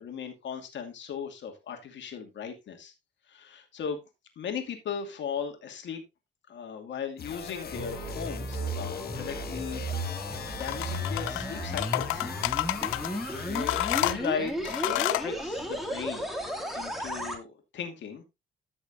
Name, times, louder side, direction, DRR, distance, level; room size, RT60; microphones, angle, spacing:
voice 1, 0.0-2.9 3.3-4.0 4.4-6.0 6.5-9.8 10.6-12.3 13.5-16.3 16.7-18.3, left 6 dB, 70° left, 4 dB, 2.5 m, -37 dB
sound 1, 7.2-14.1, left 7 dB, 50° left, 1.3 m, -40 dB
sound 2, 7.3-17.4, right 1 dB, ahead, 2.4 m, -35 dB
sound 3, 10.6-11.4 11.8-13.1 13.5-15.3, left 18 dB, 85° left, 0.4 m, -29 dB
14.0 x 6.2 x 2.7 m, 0.23 s
cardioid pair, 90°, 20 cm